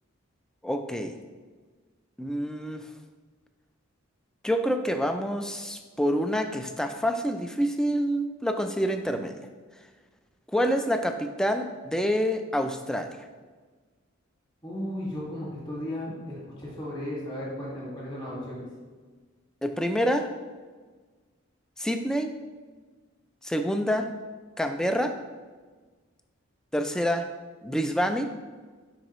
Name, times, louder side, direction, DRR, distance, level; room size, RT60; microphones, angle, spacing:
voice 1, 0.6-1.2 2.2-2.9 4.4-9.4 10.5-13.2 19.6-20.3 21.8-22.3 23.4-24.1 24.6-25.1 26.7-27.3 27.6-28.3, equal, 5° left, 6 dB, 0.3 m, -27 dB
voice 2, 14.6-18.7, left 1 dB, 20° left, -6 dB, 1.9 m, -35 dB
9.7 x 4.0 x 3.0 m, 1.4 s
head